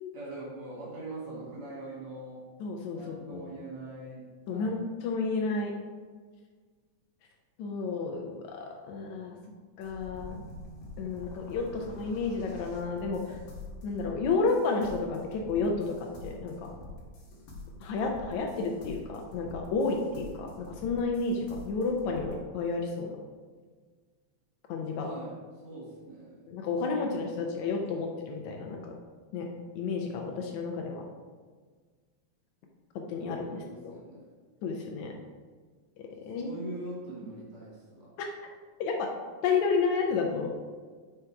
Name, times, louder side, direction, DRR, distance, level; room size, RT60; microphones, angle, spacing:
voice 1, 0.1-2.5 2.9-4.8 11.7-12.0 25.0-25.4 25.6-26.5 33.5-34.3 36.4-38.1, right 2 dB, 65° right, -5 dB, 3.3 m, -42 dB
voice 2, 2.6-3.4 4.5-5.7 7.6-9.4 9.8-10.4 11.0-13.4 13.8-16.7 17.8-23.2 24.7-25.1 26.5-28.9 29.3-29.5 29.8-31.0 33.1-33.9 34.6-35.1 36.3-36.6 38.2-38.3 38.8-39.1 39.4-40.5, left 4 dB, 80° left, 1 dB, 2.0 m, -31 dB
sound 1, 9.8-22.4, left 2 dB, 50° left, 1.4 m, -46 dB
5.7 x 5.1 x 4.6 m, 1.5 s
omnidirectional pair, 3.3 m